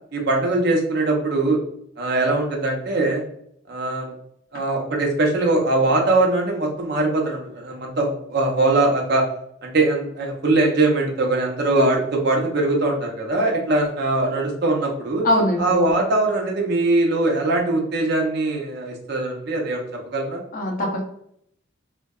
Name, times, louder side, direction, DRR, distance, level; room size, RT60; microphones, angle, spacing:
voice 1, 0.1-1.6 2.0-3.2 3.7-4.1 4.5-9.3 9.6-15.3 15.6-20.4, right 2 dB, 55° right, 0 dB, 0.5 m, -21 dB
voice 2, 15.2-15.8 20.5-21.0, left 1 dB, 45° left, 0 dB, 0.6 m, -21 dB
2.7 x 2.1 x 2.2 m, 0.71 s
head